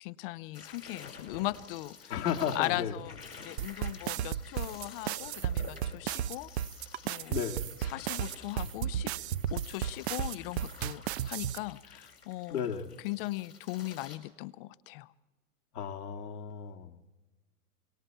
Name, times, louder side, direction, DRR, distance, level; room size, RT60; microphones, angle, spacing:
voice 1, 0.0-2.2 2.5-3.1 3.4-6.5 7.0-7.4 7.8-9.1 9.5-12.8 13.0-15.1, left 19 dB, 35° left, 18 dB, 0.7 m, -38 dB
sound 1, 0.5-14.2, left 5 dB, 85° left, 5.3 m, -51 dB
voice 2, 2.1-2.9 7.3-7.7 12.5-12.9 15.7-17.0, left 8 dB, 70° left, 2 dB, 2.0 m, -34 dB
sound 2, 3.6-11.6, right 11 dB, 45° right, 0.6 m, -33 dB
26.5 x 24.0 x 4.5 m, 1.2 s
hypercardioid pair, 110°, 47 cm